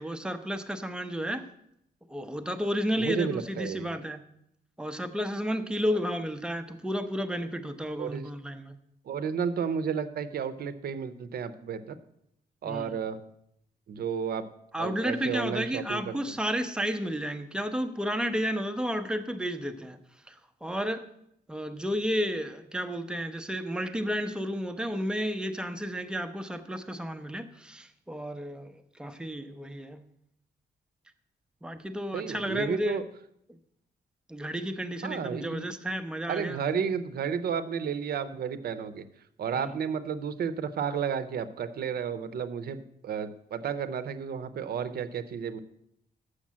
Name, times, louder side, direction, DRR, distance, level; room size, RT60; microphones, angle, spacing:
voice 1, 0.0-1.4 2.1-4.2 4.8-8.7 12.6-12.9 14.7-20.0 20.3-20.4 20.6-21.0 21.5-30.0 31.6-33.0 34.3-36.6 39.5-39.7, equal, 5° right, 7 dB, 0.5 m, -32 dB
voice 2, 3.0-4.0 8.0-8.3 9.1-12.0 12.6-13.2 13.9-14.5 14.8-16.2 32.1-33.0 35.0-35.7 36.3-39.0 39.4-45.6, right 7 dB, 65° right, 12 dB, 0.6 m, -32 dB
7.2 x 6.5 x 7.3 m, 0.76 s
wide cardioid pair, 170°, 17 cm